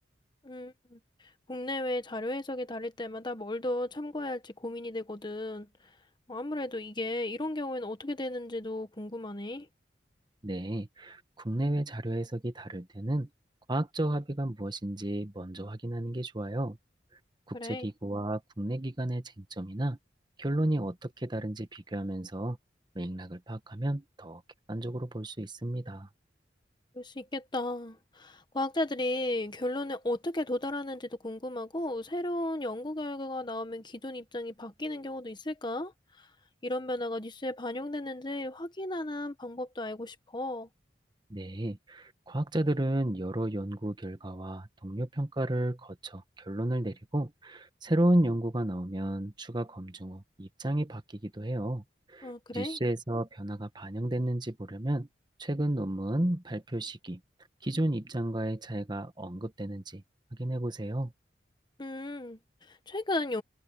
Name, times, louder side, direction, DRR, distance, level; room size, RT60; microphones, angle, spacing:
voice 1, 0.4-1.0 1.5-5.7 6.3-9.7 17.5-17.9 26.9-35.9 36.2-36.3 36.6-40.7 52.2-52.8 61.8-63.4, left 1 dB, 25° left, 1.3 m, -35 dB
voice 2, 10.4-13.3 13.7-16.8 17.5-20.0 20.4-22.6 22.9-24.4 24.7-26.1 41.3-51.8 52.1-55.1 55.4-57.2 57.6-60.0 60.4-61.1, right 1 dB, 25° right, 1.3 m, -32 dB
head